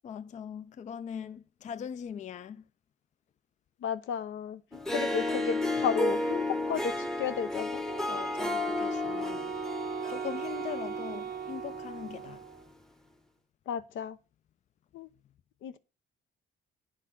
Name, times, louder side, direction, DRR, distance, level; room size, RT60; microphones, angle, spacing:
voice 1, 0.0-2.6 8.1-9.6 10.1-12.4, left 8 dB, 35° left, 0.4 m, -41 dB
voice 2, 3.8-7.8 13.7-14.2 14.9-15.1 15.6-15.8, left 8 dB, 80° left, 0.7 m, -33 dB
Harp, 4.7-12.2, left 2 dB, ahead, 0.7 m, -33 dB
Wind instrument woodwind instrument, 7.9-12.7, right 9 dB, 55° right, 0.6 m, -39 dB
9.1 x 3.9 x 5.9 m
cardioid pair, 90°, 20 cm